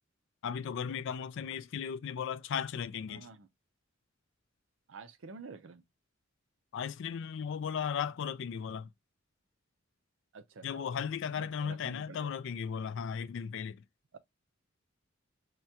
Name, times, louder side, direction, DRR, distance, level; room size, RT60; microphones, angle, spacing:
voice 1, 0.4-3.3 6.7-8.9 10.6-13.8, left 7 dB, 65° left, 0.3 m, -36 dB
voice 2, 3.1-3.5 4.9-5.8 10.3-12.3 14.1-14.2, right 4 dB, 70° right, 0.5 m, -49 dB
4.6 x 2.2 x 2.7 m
head